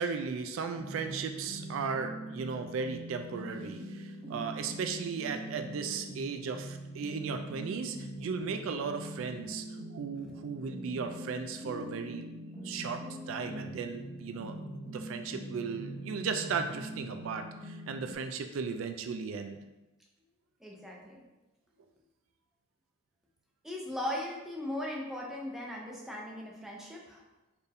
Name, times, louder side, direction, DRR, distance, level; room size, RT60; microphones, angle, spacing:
voice 1, 0.0-9.6 9.9-12.3 12.6-14.6 14.9-19.6, right 5 dB, 80° right, 7 dB, 0.3 m, -36 dB
sound 1, 0.8-18.2, right 1 dB, 30° right, 1.3 m, -43 dB
voice 2, 20.6-21.2 23.6-27.2, left 1 dB, ahead, -3 dB, 0.6 m, -38 dB
4.4 x 2.6 x 3.4 m, 1.0 s
head